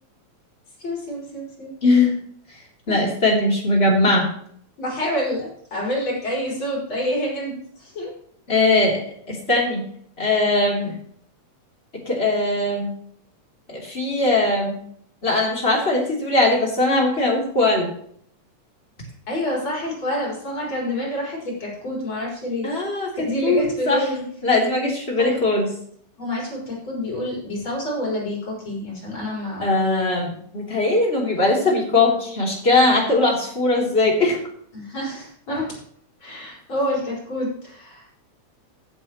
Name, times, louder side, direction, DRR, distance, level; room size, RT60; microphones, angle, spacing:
voice 1, 0.8-1.7 2.9-3.0 4.8-8.1 10.8-10.9 19.3-22.7 23.2-24.2 25.2-25.3 26.2-29.7 34.7-35.7 36.2-38.1, left 1 dB, 40° left, -4 dB, 5.4 m, -28 dB
voice 2, 1.8-2.1 2.9-4.3 8.5-9.8 10.2-10.9 11.9-12.9 13.7-14.8 15.2-17.9 22.6-24.0 24.4-25.7 29.6-34.4, left 2 dB, 20° left, -2 dB, 3.3 m, -20 dB
15.5 x 8.6 x 3.1 m, 0.63 s
omnidirectional pair, 3.4 m